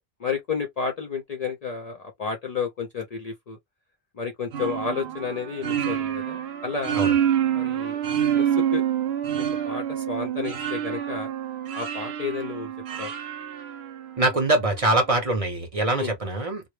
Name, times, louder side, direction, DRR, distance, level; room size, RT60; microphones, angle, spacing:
voice 1, 0.2-3.6 4.2-7.0 7.5-8.8 9.4-11.3 11.7-12.7 13.0-13.1 15.9-16.1, left 5 dB, 55° left, 0.5 m, -31 dB
sound 1, 4.5-14.3, right 9 dB, 85° right, 0.8 m, -27 dB
voice 2, 14.2-16.7, right 2 dB, 40° right, 0.7 m, -23 dB
2.1 x 2.0 x 3.0 m
omnidirectional pair, 1.0 m